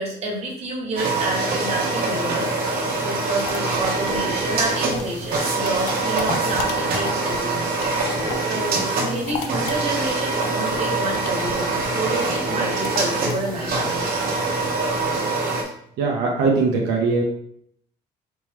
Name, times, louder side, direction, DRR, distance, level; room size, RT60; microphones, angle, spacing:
voice 1, 0.0-2.5 3.0-7.7 8.3-14.1, right 2 dB, 40° right, -2 dB, 1.7 m, -29 dB
sound 1, 1.0-15.6, right 3 dB, 65° right, 1.2 m, -24 dB
sound 2, 2.9-8.6 8.9-15.2, left 6 dB, 90° left, 0.5 m, -36 dB
voice 2, 16.0-17.2, right 4 dB, 85° right, 0 dB, 0.8 m, -20 dB
4.3 x 3.1 x 3.6 m, 0.69 s
cardioid pair, 110°, 17 cm